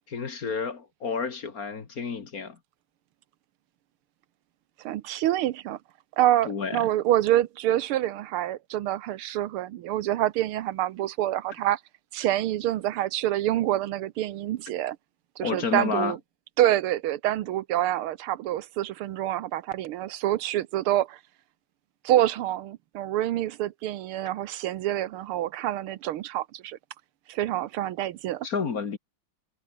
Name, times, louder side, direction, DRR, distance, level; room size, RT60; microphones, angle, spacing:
voice 1, 0.1-2.6 6.5-6.9 15.4-16.2 28.4-29.0, left 5 dB, 45° left, 2.0 m, -30 dB
voice 2, 4.8-5.8 6.2-11.8 12.1-15.0 15.4-16.2 16.6-21.2 22.0-26.8 27.3-28.5, right 13 dB, 80° right, 1.7 m, -26 dB
omnidirectional pair, 2.4 m